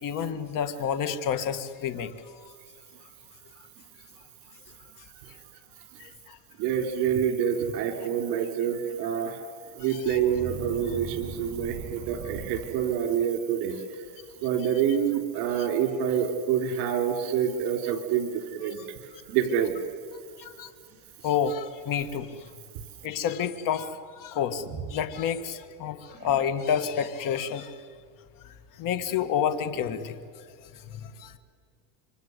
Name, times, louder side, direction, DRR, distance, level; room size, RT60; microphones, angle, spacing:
voice 1, 0.0-2.1 6.0-6.4 9.8-10.2 15.6-15.7 18.8-18.9 20.4-20.7 21.2-22.3 23.0-24.6 24.9-27.8 28.8-30.2 30.9-31.3, left 8 dB, 45° left, 11 dB, 1.8 m, -29 dB
voice 2, 6.6-9.4 9.8-13.8 14.4-18.8 19.3-19.7, right 8 dB, 65° right, 6 dB, 4.0 m, -27 dB
sound 1, 10.0-13.3 13.9-14.2 14.5-14.9 15.2-15.3 16.1-16.2 16.7-16.8 17.3-17.7 18.6-18.7 21.5-22.5 24.5-25.6 26.1-26.8, right 4 dB, 45° right, 6.0 m, -41 dB
27.5 x 24.5 x 8.1 m, 2.1 s
cardioid pair, 150°, 44 cm